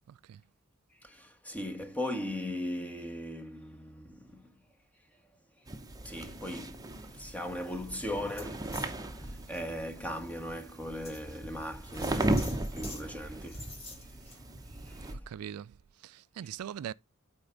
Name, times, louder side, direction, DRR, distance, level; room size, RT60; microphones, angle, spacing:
voice 1, 0.1-0.4 15.1-16.9, right 9 dB, 85° right, 0.3 m, -42 dB
voice 2, 1.0-4.5 6.0-13.7 14.3-14.4 14.8-15.3, left 1 dB, 5° left, 1.2 m, -39 dB
sound 1, 5.7-15.1, right 1 dB, 15° right, 0.8 m, -37 dB
sound 2, 8.3-8.9 9.4-9.6 10.2-10.3 11.0-11.2 11.9-13.0 13.4-14.4, left 2 dB, 30° left, 4.4 m, -46 dB
8.8 x 4.4 x 3.9 m
head